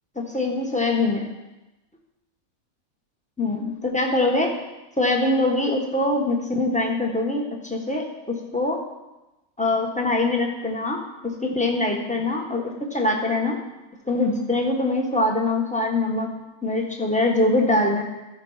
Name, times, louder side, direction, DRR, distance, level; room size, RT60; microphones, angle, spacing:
voice 1, 0.1-1.3 3.4-4.5 5.0-8.0 8.5-8.8 9.6-11.0 11.2-13.6 14.1-16.3 16.6-18.0, left 2 dB, 5° left, 1 dB, 1.2 m, -23 dB
14.5 x 5.1 x 5.6 m, 1.0 s
omnidirectional pair, 1.5 m